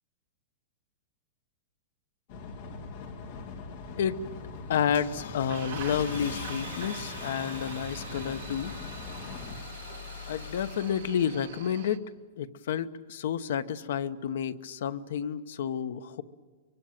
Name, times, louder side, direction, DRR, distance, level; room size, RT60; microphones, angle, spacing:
sound 1, 2.3-9.6, left 4 dB, 40° left, 2.4 m, -42 dB
Car / Engine starting, 3.7-11.9, left 8 dB, 80° left, 1.8 m, -43 dB
voice 1, 4.7-8.7 10.3-12.0 12.4-16.2, left 8 dB, 60° left, 13 dB, 1.0 m, -30 dB
sound 2, 5.5-12.0, right 12 dB, 45° right, 1.8 m, -45 dB
25.0 x 24.0 x 9.2 m, 1.4 s
supercardioid pair, 180°, 0 cm